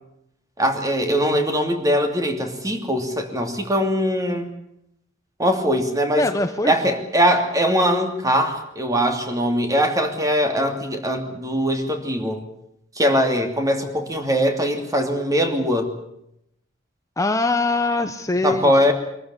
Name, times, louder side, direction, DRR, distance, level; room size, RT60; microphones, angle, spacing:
voice 1, 0.6-4.5 5.4-6.3 6.6-12.4 13.0-15.9 18.4-18.9, equal, 20° right, 5 dB, 2.8 m, -21 dB
voice 2, 6.2-6.9 17.2-18.9, left 2 dB, 15° left, 7 dB, 0.9 m, -23 dB
24.0 x 14.5 x 9.9 m, 0.79 s
head